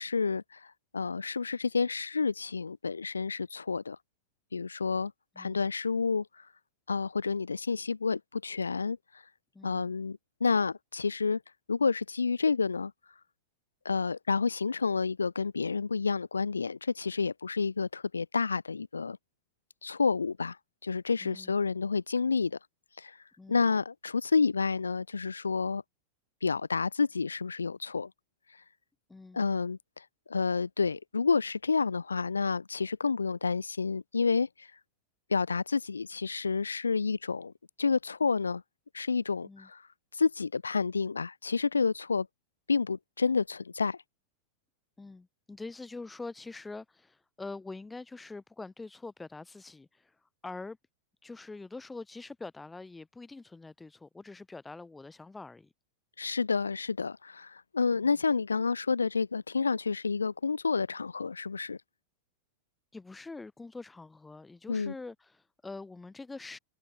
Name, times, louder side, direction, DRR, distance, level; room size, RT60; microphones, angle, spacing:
voice 1, 0.0-4.0 4.5-6.5 6.9-9.0 9.6-11.4 11.7-12.9 13.8-19.2 19.8-20.6 20.8-22.6 23.0-23.2 23.5-25.8 26.4-28.1 29.3-34.7 35.3-37.5 37.8-38.6 38.9-39.8 40.1-42.3 42.7-44.0 56.2-61.8 64.7-64.9, left 4 dB, 75° left, 0.3 m, -29 dB
voice 2, 9.5-9.9 21.2-21.6 23.4-23.7 29.1-29.4 39.4-39.7 45.0-50.2 50.4-50.8 51.2-55.7 62.9-66.6, left 3 dB, 10° left, 0.5 m, -45 dB
figure-of-eight pair, 90°, 0 cm